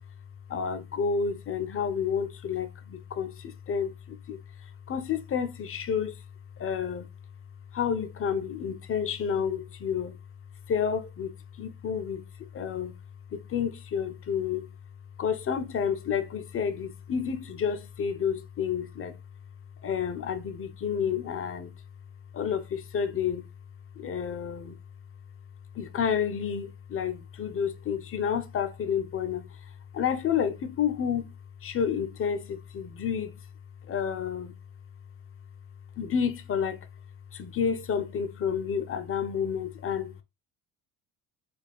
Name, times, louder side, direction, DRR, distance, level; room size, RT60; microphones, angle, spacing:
voice 1, 0.5-4.4 4.9-6.2 6.6-7.1 7.7-10.1 10.7-12.2 12.5-12.9 13.3-14.7 15.2-19.1 19.8-21.7 22.3-23.5 24.0-24.7 25.8-29.5 29.9-31.3 31.6-33.3 33.9-34.6 36.0-36.8 37.3-40.1, left 7 dB, 30° left, 0.5 m, -30 dB
2.3 x 2.3 x 3.5 m
supercardioid pair, 65°, 46 cm